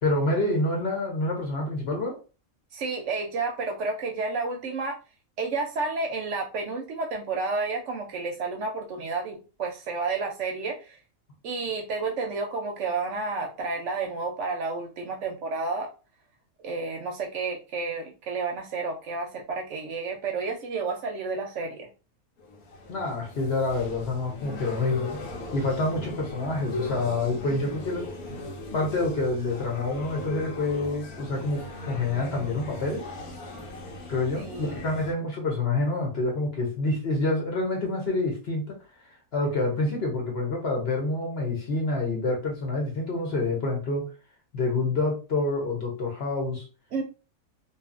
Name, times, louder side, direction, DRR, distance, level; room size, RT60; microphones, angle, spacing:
voice 1, 0.0-2.2 22.9-25.2 25.5-28.1 28.7-33.1 34.1-38.8 39.1-44.1 44.5-46.7, left 2 dB, 55° left, 0.9 m, -27 dB
voice 2, 2.7-5.0 5.4-11.0 11.4-15.9 16.6-21.9 34.4-34.9 46.9-47.0, right 4 dB, 65° right, 0.8 m, -31 dB
sound 1, 22.4-35.1, left 2 dB, 90° left, 1.2 m, -38 dB
2.7 x 2.4 x 2.4 m
omnidirectional pair, 1.5 m